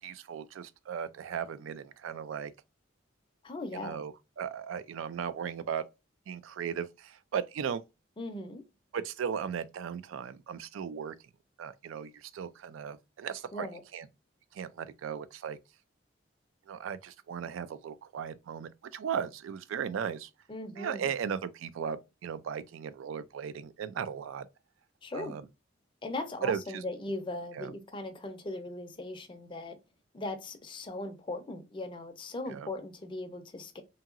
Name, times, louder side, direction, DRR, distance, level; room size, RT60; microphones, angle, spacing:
voice 1, 0.0-2.5 3.7-5.8 6.3-7.8 8.9-11.1 11.6-13.7 13.9-14.1 14.5-15.6 16.7-20.3 20.8-24.5 25.1-25.5 26.4-26.8 27.5-27.7 32.5-32.7, right 7 dB, 85° right, 0.3 m, -37 dB
voice 2, 3.4-4.0 8.2-8.6 13.5-13.8 20.5-21.1 25.0-25.4 26.0-29.8 30.1-33.8, left 2 dB, 25° left, 0.4 m, -39 dB
2.8 x 2.8 x 2.4 m
head